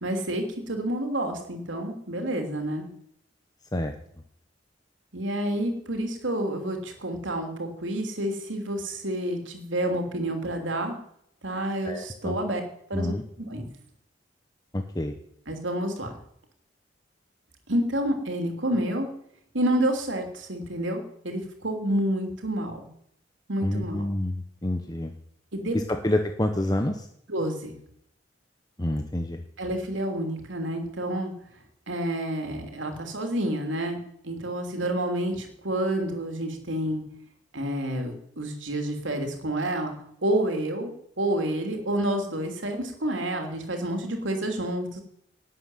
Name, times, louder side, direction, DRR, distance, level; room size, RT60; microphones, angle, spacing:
voice 1, 0.0-2.9 5.1-11.0 11.4-12.6 12.9-13.6 15.5-16.1 17.7-19.1 19.5-22.9 23.5-24.1 25.5-25.8 27.3-27.7 29.6-31.3 31.9-34.0 34.2-37.0 37.5-39.9 40.2-45.0, right 1 dB, 90° right, 4 dB, 3.1 m, -29 dB
voice 2, 11.8-12.4 12.9-13.2 14.7-15.1 23.6-25.1 25.7-27.1 28.8-29.4, left 1 dB, 20° left, 5 dB, 1.0 m, -28 dB
12.0 x 7.9 x 9.1 m, 0.71 s
head